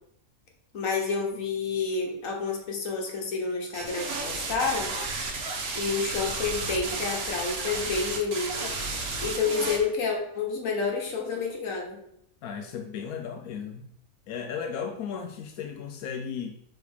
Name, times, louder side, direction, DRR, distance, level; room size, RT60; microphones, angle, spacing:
voice 1, 0.7-5.0 5.7-8.7 9.2-12.0, left 4 dB, 65° left, 0 dB, 1.6 m, -29 dB
sound 1, 3.7-9.8, right 3 dB, 85° right, 1.6 m, -32 dB
voice 2, 12.4-13.9 14.3-16.6, left 7 dB, 90° left, 4 dB, 1.1 m, -35 dB
4.9 x 4.0 x 4.9 m, 0.73 s
omnidirectional pair, 1.5 m